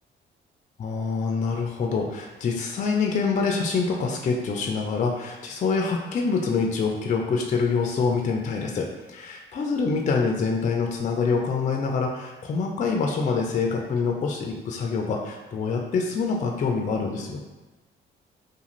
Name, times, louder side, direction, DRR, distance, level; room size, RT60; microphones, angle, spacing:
voice 1, 0.8-17.4, left 4 dB, 40° left, 1 dB, 0.4 m, -26 dB
2.5 x 2.4 x 3.0 m, 1.2 s
cardioid pair, 90°, 20 cm